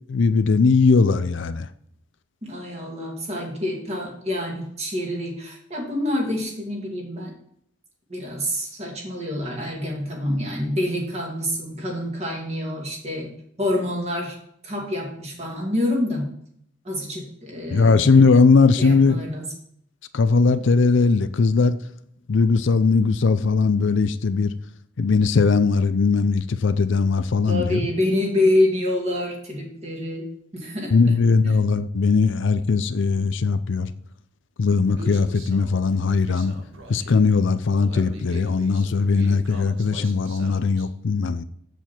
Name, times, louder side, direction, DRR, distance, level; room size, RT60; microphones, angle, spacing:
voice 1, 0.1-1.7 17.7-19.2 20.1-21.7 22.3-24.5 25.0-27.8 30.9-33.9 34.6-36.5 36.9-41.4, left 4 dB, 60° left, 12 dB, 0.5 m, -19 dB
voice 2, 2.4-7.3 8.1-13.3 13.6-14.4 14.6-16.2 16.8-18.1 18.8-19.5 27.5-30.2 30.5-30.9 31.4-31.5, left 1 dB, 30° right, -1 dB, 2.4 m, -26 dB
Human voice, 34.9-40.9, right 2 dB, 70° right, 1.5 m, -41 dB
7.8 x 7.0 x 4.4 m, 0.70 s
head